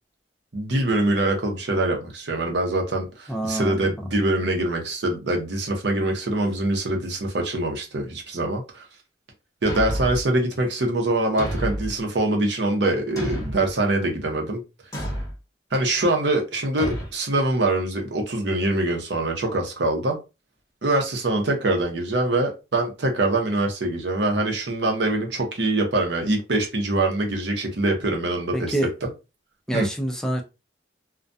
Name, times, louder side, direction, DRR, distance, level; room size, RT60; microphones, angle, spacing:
voice 1, 0.5-8.9 9.6-14.6 15.7-20.2 20.8-28.8 29.7-29.9, right 2 dB, 75° right, 0.7 m, -24 dB
voice 2, 3.3-3.9 28.5-28.9 29.7-30.4, right 1 dB, 5° left, 0.3 m, -26 dB
Thump thud, 9.7-10.3 11.4-12.0 13.2-13.7 14.9-15.3 16.8-17.1, equal, 20° left, 0.8 m, -29 dB
2.3 x 2.2 x 2.5 m
head